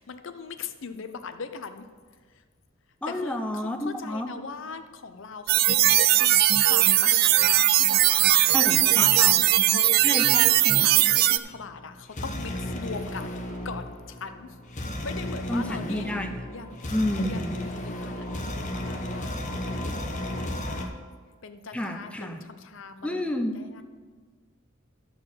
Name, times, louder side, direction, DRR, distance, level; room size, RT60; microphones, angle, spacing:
voice 1, 0.0-1.9 2.3-2.4 3.1-6.3 6.6-9.9 10.2-14.6 14.8-16.1 16.5-21.0 21.4-23.8, left 5 dB, 65° left, 9 dB, 0.7 m, -40 dB
voice 2, 3.0-4.3 8.5-9.4 10.0-10.9 15.5-16.3 16.9-17.5 21.7-22.4 23.0-23.5, left 1 dB, 5° left, 4 dB, 0.6 m, -30 dB
sound 1, 5.5-11.4, right 14 dB, 50° right, 0.3 m, -19 dB
sound 2, 11.5-20.9, left 1 dB, 35° left, 1.1 m, -34 dB
12.5 x 4.6 x 7.3 m, 1.5 s
head